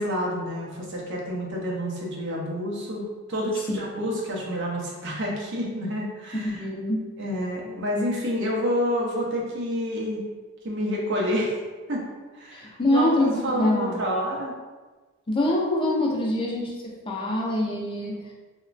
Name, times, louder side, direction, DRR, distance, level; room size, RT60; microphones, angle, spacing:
voice 1, 0.0-6.6 7.2-10.2 10.6-11.5 11.9-12.0 12.3-14.5, equal, 55° right, -3 dB, 0.6 m, -28 dB
voice 2, 6.4-7.1 12.5-14.0 15.3-16.7 17.1-18.3, left 1 dB, 25° left, -2 dB, 0.4 m, -25 dB
2.9 x 2.2 x 2.4 m, 1.3 s
head